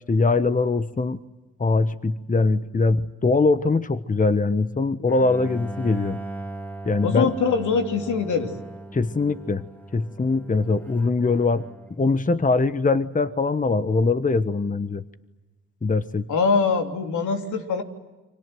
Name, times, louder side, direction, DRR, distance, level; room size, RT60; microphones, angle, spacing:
voice 1, 0.1-1.2 1.6-6.2 6.8-7.3 8.9-9.6 9.9-11.7 12.0-15.0 15.8-16.3, left 3 dB, 25° left, 12 dB, 1.2 m, -22 dB
Bowed string instrument, 5.1-12.1, right 1 dB, 5° left, 2.7 m, -38 dB
voice 2, 7.0-8.5 16.3-17.8, left 5 dB, 80° left, 4 dB, 3.4 m, -23 dB
29.5 x 25.0 x 7.8 m, 1.2 s
supercardioid pair, 60°, 30 cm